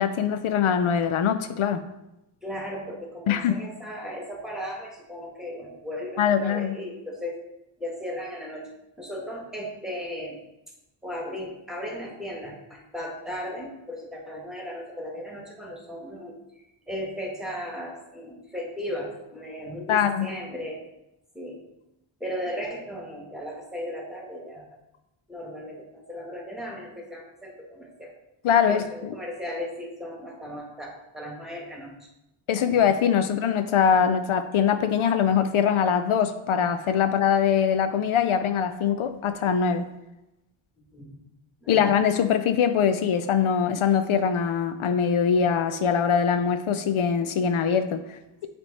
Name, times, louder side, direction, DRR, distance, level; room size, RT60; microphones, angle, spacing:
voice 1, 0.0-1.8 3.3-3.6 6.2-6.8 19.9-20.3 28.4-28.8 32.5-39.9 41.7-48.5, left 7 dB, 75° left, 9 dB, 0.6 m, -23 dB
voice 2, 2.4-7.4 7.8-10.4 11.0-16.3 16.9-20.8 21.3-21.6 22.2-24.6 25.3-28.1 28.7-32.1 40.9-41.2 41.6-41.8, equal, ahead, -1 dB, 1.7 m, -36 dB
8.1 x 3.5 x 4.1 m, 0.90 s
wide cardioid pair, 80°, 49 cm